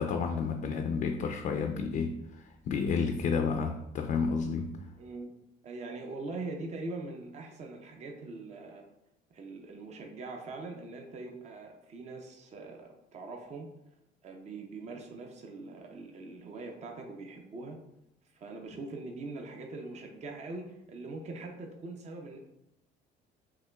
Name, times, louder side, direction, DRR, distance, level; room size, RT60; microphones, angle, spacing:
voice 1, 0.0-4.7, left 5 dB, 50° left, 5 dB, 0.4 m, -31 dB
voice 2, 5.0-5.3 5.6-8.8 9.3-13.7 14.2-17.8 18.3-22.4, right 3 dB, 40° right, 2 dB, 0.6 m, -42 dB
5.6 x 2.9 x 2.3 m, 0.84 s
cardioid pair, 110°, 17 cm